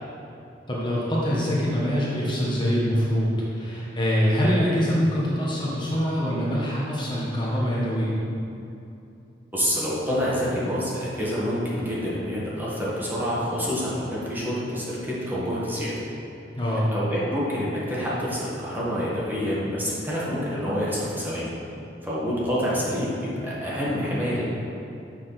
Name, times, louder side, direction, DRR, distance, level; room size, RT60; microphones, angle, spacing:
voice 1, 0.7-8.1 16.5-16.9, equal, 25° left, -6 dB, 1.3 m, -24 dB
voice 2, 9.5-15.9 16.9-21.5 22.0-24.4, equal, 10° right, -8 dB, 1.8 m, -27 dB
6.7 x 6.0 x 6.0 m, 2.7 s
head